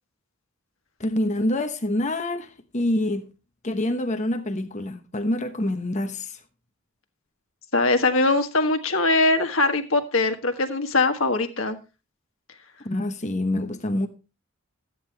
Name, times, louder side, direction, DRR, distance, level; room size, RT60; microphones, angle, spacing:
voice 1, 1.0-3.3 3.6-6.4 12.8-14.1, left 1 dB, 35° left, 1.0 m, -26 dB
voice 2, 7.7-11.8, left 2 dB, 75° left, 1.5 m, -22 dB
13.5 x 9.3 x 3.3 m
head